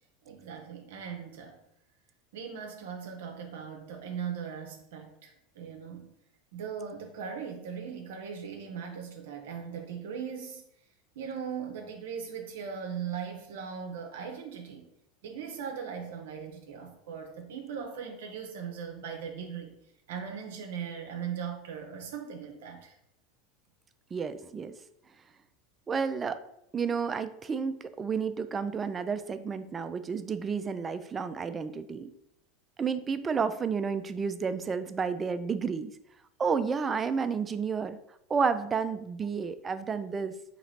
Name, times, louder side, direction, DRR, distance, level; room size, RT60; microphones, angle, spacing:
voice 1, 0.2-1.6 2.3-6.1 6.5-10.6 11.2-14.9 15.2-19.8 20.1-22.9, right 7 dB, 75° right, 3 dB, 0.6 m, -39 dB
voice 2, 24.1-24.7 25.9-26.4 26.7-32.1 32.8-35.9 36.4-38.0 38.3-40.3, right 5 dB, 25° right, 11 dB, 0.3 m, -31 dB
3.0 x 2.9 x 4.1 m, 0.78 s
hypercardioid pair, 95°, 0 cm